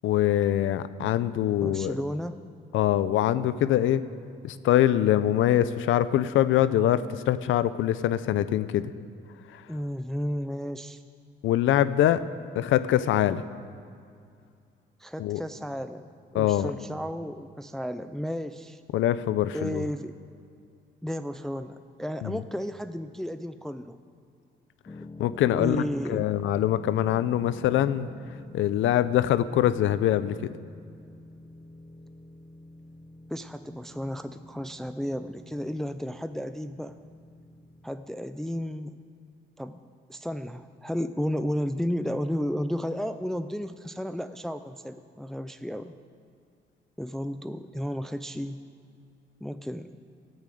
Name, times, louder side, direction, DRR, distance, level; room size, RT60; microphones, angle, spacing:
voice 1, 0.0-1.9 2.7-4.0 4.4-8.8 11.4-12.2 12.6-13.4 15.2-15.4 16.3-16.7 18.9-19.8 22.2-22.4 25.2-25.8 26.1-28.1 28.5-30.4, left 12 dB, 80° left, 14 dB, 0.6 m, -23 dB
voice 2, 1.6-2.4 9.7-11.0 15.0-18.8 19.5-20.1 21.0-24.0 25.5-26.3 33.3-37.0 37.8-39.0 39.6-39.8 40.1-45.9 47.0-48.7 49.4-49.9, equal, ahead, 10 dB, 0.5 m, -33 dB
sound 1, 24.9-38.1, left 2 dB, 20° left, 0.9 m, -47 dB
14.5 x 9.6 x 7.8 m, 2.4 s
cardioid pair, 90°, 20 cm